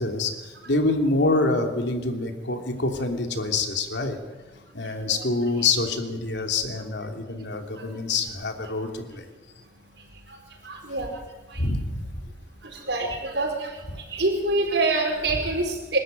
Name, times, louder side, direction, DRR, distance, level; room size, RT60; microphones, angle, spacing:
voice 1, 0.0-4.2 4.7-9.2 11.6-12.1, left 3 dB, 85° left, 4 dB, 3.0 m, -26 dB
voice 2, 10.6-11.1 12.9-13.7 14.1-16.0, right 2 dB, 85° right, 0 dB, 4.7 m, -25 dB
26.5 x 13.0 x 9.3 m, 1.2 s
head